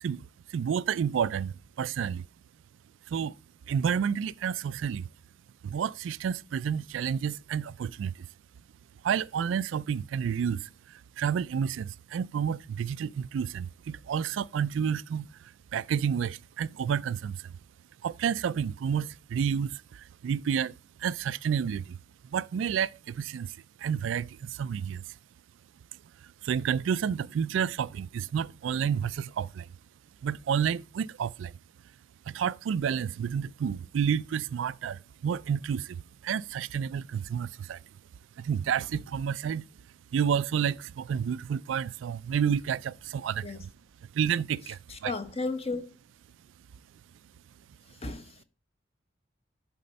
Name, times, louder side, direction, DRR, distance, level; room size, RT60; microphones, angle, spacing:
voice 1, 0.5-2.2 3.1-3.3 3.7-5.1 5.6-8.3 9.0-10.7 11.2-15.3 15.7-17.5 18.0-22.0 22.3-23.5 23.8-25.0 26.4-29.7 30.2-31.5 32.3-36.0 36.2-37.8 38.4-39.6 40.1-43.6 44.1-45.1, right 7 dB, 75° right, 0.3 m, -30 dB
voice 2, 44.9-45.9 48.0-48.3, left 3 dB, 30° left, 1.0 m, -33 dB
11.0 x 4.3 x 5.2 m
head